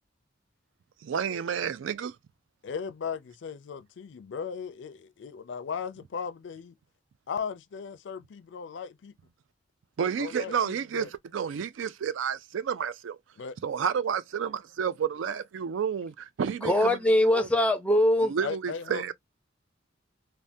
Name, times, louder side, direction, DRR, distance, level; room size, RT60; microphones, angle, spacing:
voice 1, 1.0-2.1 10.0-13.2 13.6-17.0 17.3-17.5 18.2-19.1, right 7 dB, 85° right, 0.4 m, -30 dB
voice 2, 2.6-6.7 7.3-9.1 10.2-11.1 13.4-13.6 18.4-19.0, left 6 dB, 65° left, 0.4 m, -37 dB
voice 3, 16.6-18.3, left 1 dB, 5° left, 0.5 m, -22 dB
3.5 x 2.2 x 2.6 m
head